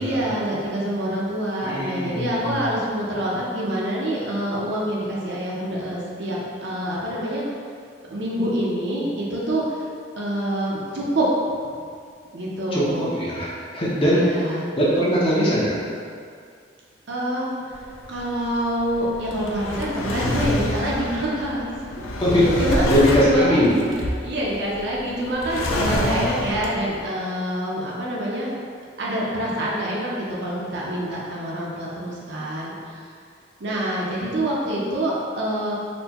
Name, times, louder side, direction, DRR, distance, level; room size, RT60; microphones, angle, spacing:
voice 1, 0.0-7.4 8.1-9.8 10.2-11.2 12.3-13.1 14.0-14.7 17.1-17.5 18.1-21.9 22.6-23.7 24.2-28.6 29.0-32.7 33.6-35.7, right 1 dB, 60° right, -5 dB, 0.6 m, -26 dB
voice 2, 1.6-2.7 12.7-15.8 22.2-22.5 22.9-23.8 25.9-26.6, equal, 25° left, -7 dB, 0.6 m, -21 dB
Drawer open or close, 17.7-27.0, left 1 dB, 85° left, 0.4 m, -28 dB
4.3 x 2.1 x 2.8 m, 2.2 s
head